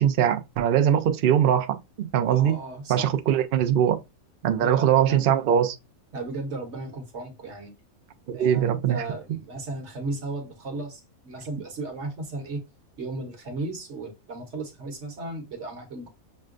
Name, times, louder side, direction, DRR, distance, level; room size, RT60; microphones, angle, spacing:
voice 1, 0.0-2.6 2.9-4.0 4.4-5.8 8.3-9.0, right 9 dB, 75° right, 0.5 m, -22 dB
voice 2, 2.2-3.4 4.6-5.4 6.1-7.7 8.3-12.6 13.0-16.1, right 2 dB, 55° right, 1.2 m, -35 dB
6.5 x 2.2 x 2.5 m
omnidirectional pair, 1.5 m